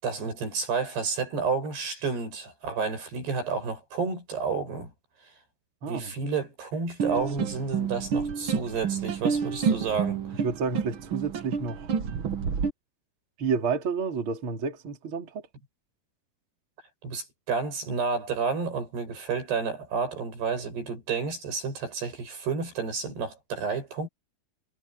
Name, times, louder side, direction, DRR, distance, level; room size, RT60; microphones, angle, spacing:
voice 1, 0.0-4.9 5.9-10.4 17.0-24.1, right 5 dB, 85° right, 10.0 m, -30 dB
voice 2, 5.8-6.1 10.4-11.9 13.4-15.4, right 5 dB, 35° right, 3.3 m, -30 dB
sound 1, 7.0-12.7, right 6 dB, 65° right, 1.3 m, -29 dB
omnidirectional pair, 4.6 m